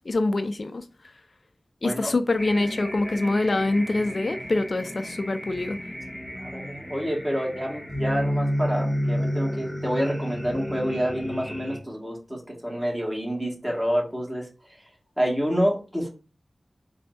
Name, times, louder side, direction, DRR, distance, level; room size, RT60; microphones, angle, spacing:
voice 1, 0.1-0.8 1.8-5.8, left 2 dB, 60° left, 0.4 m, -25 dB
sound 1, 2.4-11.8, equal, 5° left, 2.5 m, -31 dB
voice 2, 6.4-14.5 15.2-16.1, equal, 15° right, 2.0 m, -28 dB
4.1 x 2.6 x 4.4 m
wide cardioid pair, 65°, 0 cm